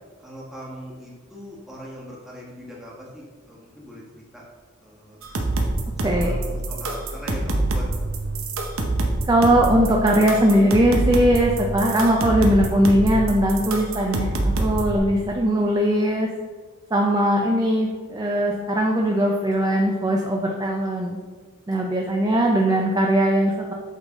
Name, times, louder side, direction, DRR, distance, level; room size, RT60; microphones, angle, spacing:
voice 1, 0.2-4.0 4.3-4.4 4.8-5.2 6.0-8.2, equal, ahead, -5 dB, 1.3 m, -40 dB
sound 1, 5.2-15.0, right 2 dB, 90° right, 0.9 m, -25 dB
voice 2, 6.0-6.4 9.3-16.3 16.9-21.2 21.7-23.7, right 1 dB, 20° right, 0 dB, 0.4 m, -20 dB
8.1 x 3.9 x 3.6 m, 1.5 s
head